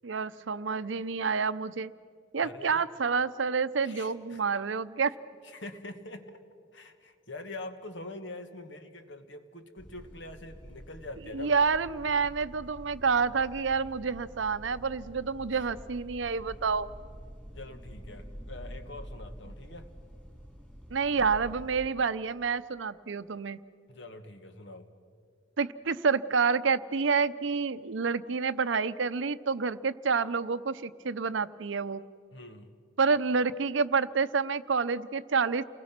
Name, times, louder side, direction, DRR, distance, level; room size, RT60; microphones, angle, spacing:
voice 1, 0.0-1.9 2.3-5.1 11.3-16.9 20.9-23.6 25.6-32.0 33.0-35.7, right 5 dB, 70° right, 14 dB, 0.6 m, -28 dB
voice 2, 2.4-2.8 3.8-4.4 5.4-6.4 6.7-11.5 15.5-15.7 17.5-19.9 23.9-24.9 32.3-32.7, left 2 dB, 65° left, 8 dB, 1.7 m, -44 dB
sound 1, 9.8-21.9, equal, 5° left, 3.6 m, -47 dB
29.5 x 20.0 x 6.0 m, 2.1 s
head